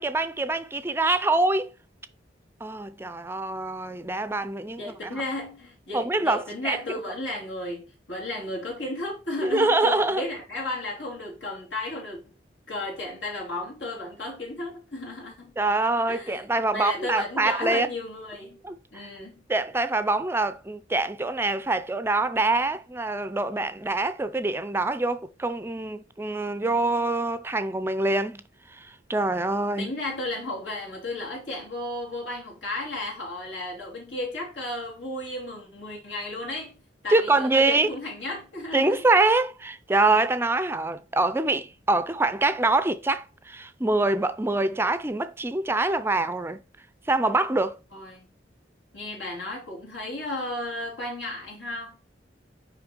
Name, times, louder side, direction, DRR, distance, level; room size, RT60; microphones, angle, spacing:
voice 1, 0.0-1.7 2.6-5.2 5.9-6.8 9.4-10.2 15.6-17.9 18.6-18.7 19.5-28.4 28.7-29.9 37.1-37.9 38.7-46.6 47.1-47.8, right 2 dB, 15° right, 0.4 m, -25 dB
voice 2, 4.8-12.3 12.7-15.5 16.1-16.5 16.7-18.6 18.9-19.4 29.8-36.8 37.0-39.0 47.9-48.3 48.9-52.0, left 2 dB, 85° left, 3.0 m, -34 dB
5.9 x 4.8 x 5.2 m
head